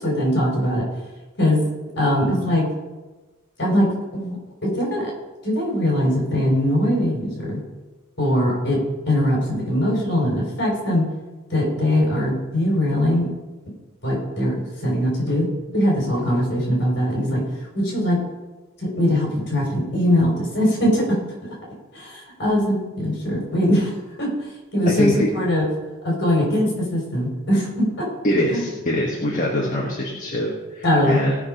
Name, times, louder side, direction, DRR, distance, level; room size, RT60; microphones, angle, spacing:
voice 1, 0.0-0.8 1.4-1.6 2.0-2.7 3.6-4.4 4.6-5.1 5.4-7.6 8.2-8.8 9.1-11.0 11.5-13.3 14.0-15.5 15.7-17.4 17.7-18.2 18.8-21.0 21.9-24.3 24.7-25.7 26.0-28.0 28.5-28.7 30.8-31.2, left 1 dB, 55° left, -2 dB, 4.5 m, -21 dB
voice 2, 25.0-25.3 28.2-31.3, left 1 dB, 40° left, -2 dB, 1.5 m, -23 dB
17.5 x 5.9 x 5.2 m, 1.2 s
head